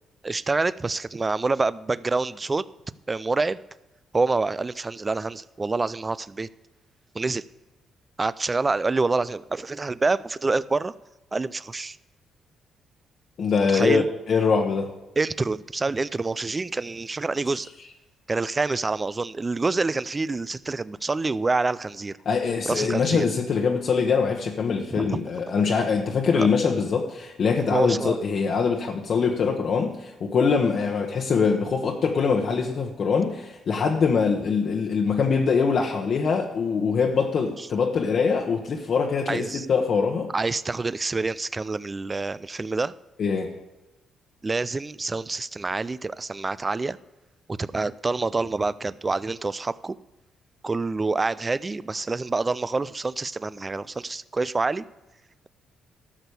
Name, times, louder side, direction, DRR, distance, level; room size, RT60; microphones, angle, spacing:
voice 1, 0.2-2.6 3.1-3.6 4.1-6.5 7.1-7.4 8.2-10.9 11.3-12.0 13.7-14.0 15.2-17.7 18.3-22.1 22.6-23.3 24.9-25.2 26.3-26.5 27.7-28.2 39.3-39.7 40.3-42.9 44.4-47.0 47.5-50.0 50.6-54.8, right 3 dB, 25° right, 0.4 m, -27 dB
voice 2, 13.4-14.9 22.2-40.3 43.2-43.5, left 5 dB, 55° left, 1.1 m, -23 dB
12.5 x 6.2 x 6.9 m
cardioid pair, 90°, 0 cm